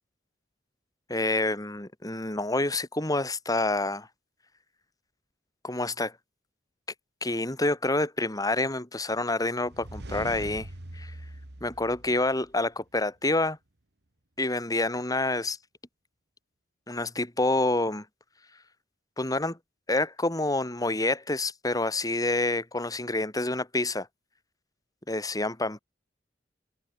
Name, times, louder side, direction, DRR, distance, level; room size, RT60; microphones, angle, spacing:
voice 1, 1.1-4.1 5.6-6.1 7.2-10.7 10.9-11.1 11.6-13.6 14.4-15.6 16.9-18.0 19.2-19.6 19.9-24.1 25.1-25.8, left 2 dB, 20° left, 3.0 m, -28 dB
sound 1, 9.6-12.6, right 1 dB, 60° right, 2.1 m, -42 dB
open air
head